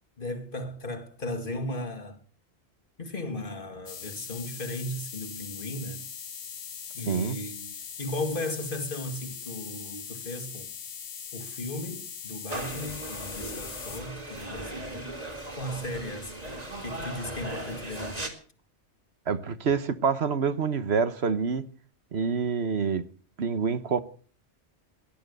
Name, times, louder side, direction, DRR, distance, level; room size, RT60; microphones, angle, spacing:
voice 1, 0.2-2.2 3.0-6.1 6.9-10.7 11.3-15.1 15.5-16.4 16.8-18.3, left 1 dB, 50° left, 2.3 m, -36 dB
sound 1, 3.9-14.0, left 7 dB, 75° left, 1.4 m, -41 dB
voice 2, 7.1-7.4 19.3-21.7 22.1-23.0 23.4-24.0, right 5 dB, 65° right, 1.3 m, -27 dB
sound 2, 12.5-18.3, right 1 dB, 35° right, 2.7 m, -38 dB
17.5 x 11.5 x 6.7 m
omnidirectional pair, 1.2 m